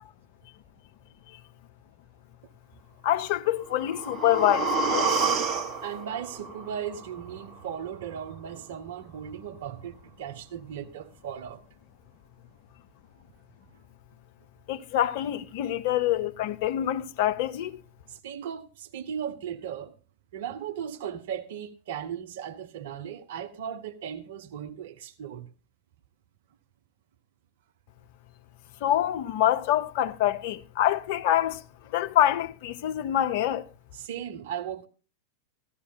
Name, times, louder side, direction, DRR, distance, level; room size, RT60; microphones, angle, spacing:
voice 1, 3.0-5.1 5.4-5.5 14.7-17.8 28.8-31.6 31.9-33.7, left 12 dB, 50° left, 0.6 m, -26 dB
sound 1, 3.6-7.6 7.9-8.0, right 4 dB, 30° right, 1.2 m, -29 dB
voice 2, 5.8-11.6 18.1-19.9 20.3-25.5 33.9-34.9, right 9 dB, 55° right, 0.9 m, -37 dB
15.5 x 13.0 x 2.3 m
figure-of-eight pair, 90°, 0 cm